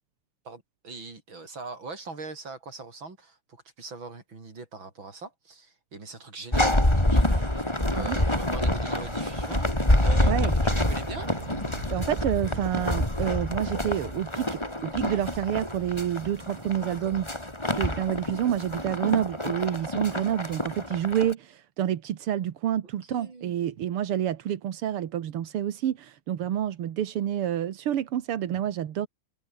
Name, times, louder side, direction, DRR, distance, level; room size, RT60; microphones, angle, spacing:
voice 1, 0.4-11.3 23.1-23.8, right 3 dB, 40° right, 5.6 m, -42 dB
sound 1, 6.5-21.3, left 1 dB, 10° left, 3.8 m, -27 dB
sound 2, 9.8-15.0, right 7 dB, 80° right, 4.4 m, -44 dB
voice 2, 11.9-17.3 17.7-29.1, right 10 dB, 55° right, 1.9 m, -28 dB
omnidirectional pair, 3.4 m